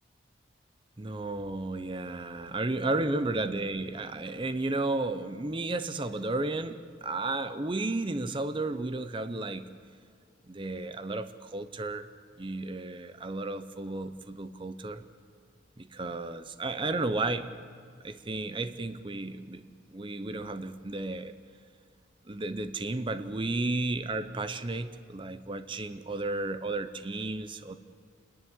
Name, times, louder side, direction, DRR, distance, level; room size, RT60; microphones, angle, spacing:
voice 1, 1.0-9.7 10.5-12.1 12.4-15.0 15.8-17.5 18.0-19.6 19.9-21.3 22.3-27.8, right 2 dB, 25° right, 11 dB, 0.7 m, -33 dB
27.5 x 11.0 x 9.6 m, 2.2 s
head